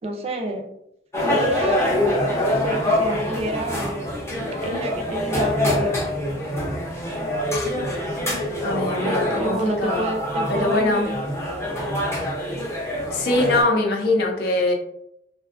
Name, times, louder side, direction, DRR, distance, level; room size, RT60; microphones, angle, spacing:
voice 1, 0.0-0.7 1.2-3.9 4.6-6.0 9.0-11.2, right 1 dB, 35° right, 3 dB, 0.4 m, -29 dB
sound 1, 1.1-13.6, left 1 dB, 15° left, 0.6 m, -25 dB
voice 2, 8.6-10.1 10.5-11.0 13.1-14.7, left 2 dB, 65° left, 2 dB, 0.5 m, -22 dB
2.5 x 2.3 x 2.4 m, 0.77 s
head